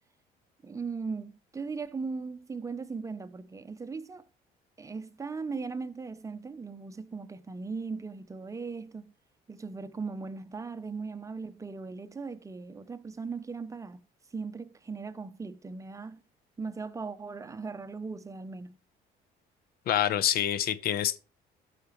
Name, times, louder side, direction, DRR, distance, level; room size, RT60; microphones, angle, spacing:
voice 1, 0.6-4.2 4.8-9.1 9.5-14.0 14.3-16.2 16.6-18.8, right 4 dB, 20° right, 0.7 m, -38 dB
voice 2, 19.9-21.2, left 10 dB, 65° left, 0.8 m, -26 dB
13.5 x 5.8 x 3.1 m
cardioid pair, 110°, 17 cm